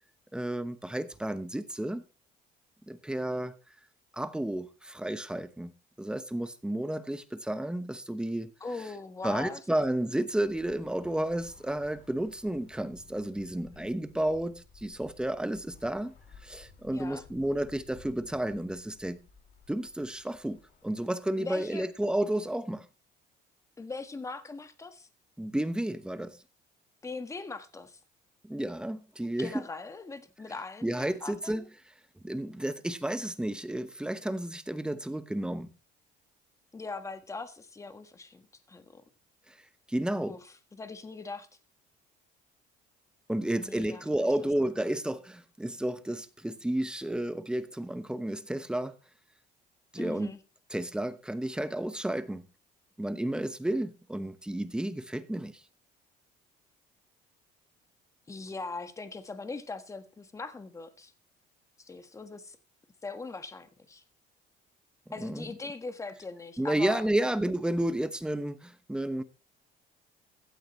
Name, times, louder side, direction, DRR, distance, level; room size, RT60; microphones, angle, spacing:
voice 1, 0.3-2.0 2.9-3.6 4.1-5.7 6.0-8.5 9.2-16.1 16.4-19.2 19.7-22.8 25.4-26.4 28.4-29.6 30.8-31.6 32.2-35.7 39.5-39.6 39.9-40.4 43.3-48.9 49.9-50.3 50.7-52.4 53.0-55.6 65.2-65.5 66.6-69.2, right 1 dB, 5° right, 0.9 m, -32 dB
voice 2, 8.6-9.6 13.8-13.9 16.9-17.2 21.4-21.9 23.8-25.1 27.0-28.0 29.2-31.7 36.7-39.0 40.2-40.4 40.7-41.5 43.5-44.5 50.0-50.4 58.3-61.1 61.8-62.6 63.0-64.0 65.1-67.0, left 3 dB, 15° left, 1.5 m, -40 dB
Bus / Traffic noise roadway noise, 10.3-22.7, left 4 dB, 50° left, 4.8 m, -57 dB
16.0 x 12.0 x 3.2 m
cardioid pair, 145°, 18 cm